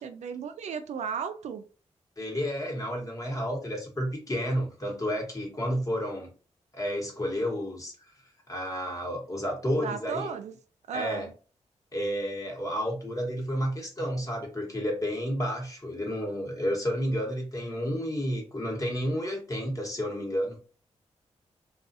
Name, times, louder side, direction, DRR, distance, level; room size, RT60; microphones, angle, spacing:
voice 1, 0.0-1.6 9.7-10.5 10.9-11.3, right 6 dB, 75° right, 0.4 m, -35 dB
voice 2, 2.2-6.3 6.7-7.9 8.5-10.3 10.9-11.3 11.9-20.6, equal, 30° left, 1.2 m, -31 dB
2.4 x 2.3 x 2.6 m
cardioid pair, 70°, 12 cm